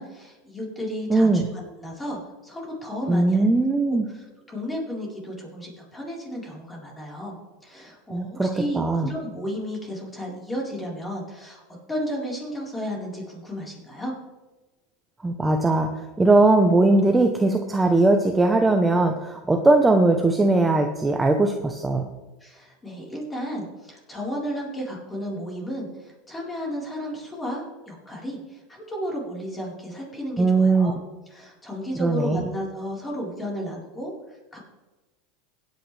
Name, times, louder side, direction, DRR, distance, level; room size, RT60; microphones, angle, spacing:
voice 1, 0.0-3.5 3.9-7.4 7.6-11.6 11.9-14.1 22.4-31.0 31.3-34.6, equal, 15° left, -2 dB, 4.5 m, -33 dB
voice 2, 1.1-1.5 3.1-4.1 8.1-9.1 15.2-22.0 30.4-30.9 32.0-32.4, right 2 dB, 10° right, 4 dB, 1.0 m, -20 dB
16.0 x 9.3 x 3.5 m, 1.1 s
supercardioid pair, 115°, 0 cm